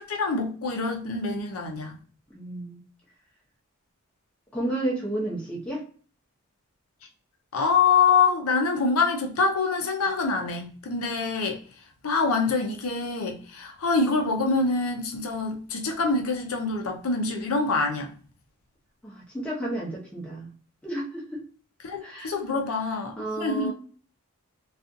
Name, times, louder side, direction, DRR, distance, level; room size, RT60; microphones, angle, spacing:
voice 1, 0.0-1.9 7.5-11.6 12.0-18.1 21.8-23.7, left 4 dB, 80° left, 0.6 m, -25 dB
voice 2, 2.3-2.8 4.5-5.8 19.0-20.5 20.8-21.4 22.0-22.6 23.2-23.7, right 1 dB, 5° left, 0.7 m, -32 dB
2.4 x 2.4 x 2.6 m
head